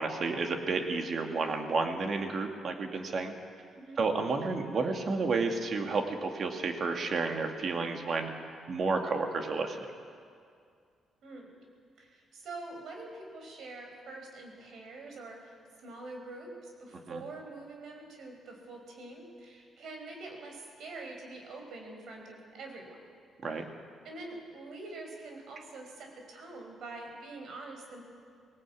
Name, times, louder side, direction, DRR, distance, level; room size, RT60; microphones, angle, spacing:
voice 1, 0.0-3.3 4.0-8.3 8.7-9.8 17.1-17.2 23.4-23.6, right 4 dB, 50° right, 4 dB, 2.3 m, -31 dB
voice 2, 3.7-4.1 11.2-11.5 12.0-23.1 23.5-23.7 24.0-28.0, right 2 dB, 70° right, 2 dB, 4.9 m, -45 dB
18.5 x 18.5 x 8.5 m, 2.2 s
cardioid pair, 90°, 0 cm